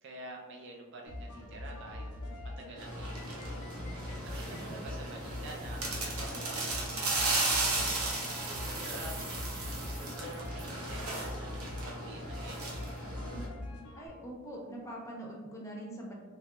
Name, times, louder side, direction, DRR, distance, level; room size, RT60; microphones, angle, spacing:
voice 1, 0.0-2.1 2.4-3.3 4.2-8.1 8.8-9.6 10.2-11.6 11.9-12.8, right 2 dB, 55° right, 0 dB, 0.4 m, -48 dB
sound 1, 1.1-14.1, left 1 dB, 90° left, 0.5 m, -43 dB
sound 2, 2.8-13.5, right 2 dB, 85° right, 0.7 m, -35 dB
voice 2, 4.3-4.7 13.2-13.6 13.9-16.1, right 1 dB, 15° left, -2 dB, 0.5 m, -44 dB
3.0 x 2.3 x 2.9 m, 1.4 s
head